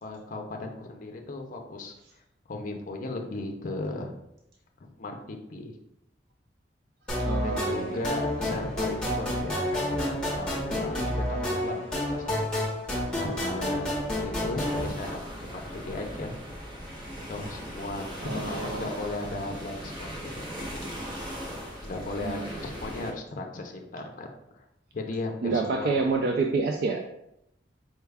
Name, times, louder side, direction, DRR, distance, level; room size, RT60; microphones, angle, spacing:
voice 1, 0.0-1.9 2.5-4.1 5.0-5.8 7.4-12.5 13.1-15.2 15.5-16.3 17.3-18.0 18.3-20.5 21.8-24.3 24.5-24.6 24.9-25.9, left 2 dB, 45° left, 2 dB, 0.5 m, -36 dB
sound 1, 7.1-14.8, left 1 dB, 5° left, 0.9 m, -29 dB
voice 2, 7.2-8.0 18.2-19.1 22.2-22.6 25.4-27.0, right 4 dB, 60° right, 2 dB, 0.3 m, -28 dB
sound 2, 14.6-23.1, equal, 25° right, 0.8 m, -39 dB
4.4 x 2.3 x 3.3 m, 0.82 s
head